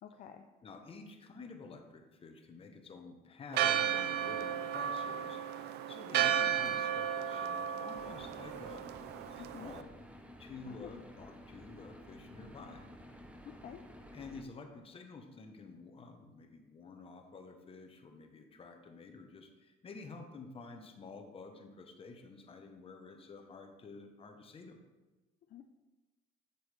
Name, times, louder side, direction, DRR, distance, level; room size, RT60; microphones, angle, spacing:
voice 1, 0.0-0.4 9.4-9.7 10.6-11.0 13.4-13.8 25.5-25.6, left 9 dB, 50° left, 6 dB, 0.5 m, -50 dB
voice 2, 0.6-8.9 9.3-10.0 10.4-12.9 14.1-24.8, left 4 dB, 35° left, 5 dB, 1.1 m, -50 dB
Church bell, 3.5-9.8, right 9 dB, 75° right, 0.4 m, -34 dB
sound 1, 7.9-14.4, equal, 5° right, 0.8 m, -53 dB
7.9 x 7.0 x 3.4 m, 1.2 s
cardioid pair, 110°, 17 cm